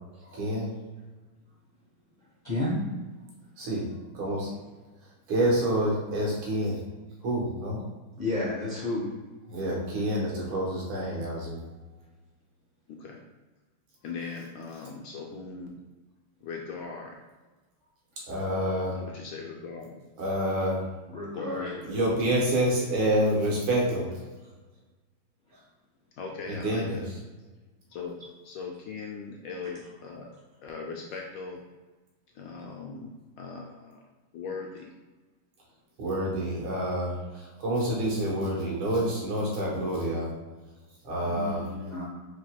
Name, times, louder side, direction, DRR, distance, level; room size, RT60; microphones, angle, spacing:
voice 1, 0.2-0.8 3.6-3.9 4.1-4.5 5.3-6.8 7.2-7.8 9.5-11.7 18.3-19.0 20.2-20.9 21.8-24.1 26.5-27.0 36.0-40.3 41.0-41.7, right 1 dB, 85° right, -4 dB, 2.1 m, -28 dB
voice 2, 2.4-2.8 8.2-9.1 21.1-21.8 41.2-42.1, left 2 dB, 45° left, -7 dB, 0.6 m, -31 dB
voice 3, 12.9-13.2 14.0-15.8 16.4-17.2 18.9-20.0 21.3-22.0 26.2-27.1 27.9-28.2 28.4-30.3 30.6-31.6 32.3-33.1 33.4-34.0 34.3-34.9, left 5 dB, 75° left, 0 dB, 1.1 m, -39 dB
4.9 x 3.9 x 2.2 m, 1.2 s
omnidirectional pair, 2.4 m